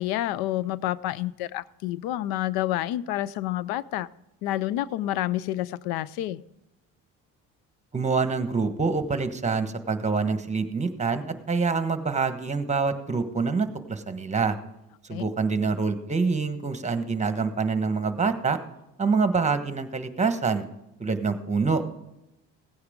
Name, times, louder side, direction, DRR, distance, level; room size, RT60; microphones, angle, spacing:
voice 1, 0.0-4.1 4.4-6.4 15.1-15.2, left 14 dB, 85° left, 20 dB, 0.5 m, -29 dB
voice 2, 7.9-14.6 15.1-18.6 19.0-20.7 21.0-21.8, right 4 dB, 20° right, 9 dB, 1.3 m, -26 dB
16.5 x 9.6 x 3.7 m, 0.91 s
supercardioid pair, 85°, 36 cm